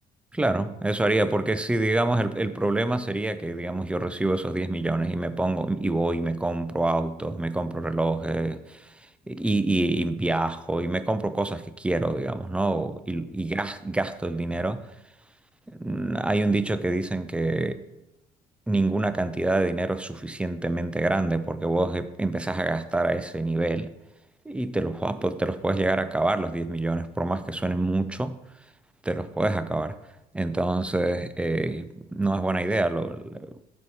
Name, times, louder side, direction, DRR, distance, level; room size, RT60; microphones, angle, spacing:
voice 1, 0.3-8.9 9.3-14.8 15.7-17.8 18.7-23.9 24.5-28.4 29.0-30.0 30.3-33.6, right 2 dB, 5° right, 0.4 m, -26 dB
7.3 x 4.1 x 6.3 m
cardioid pair, 110°, 17 cm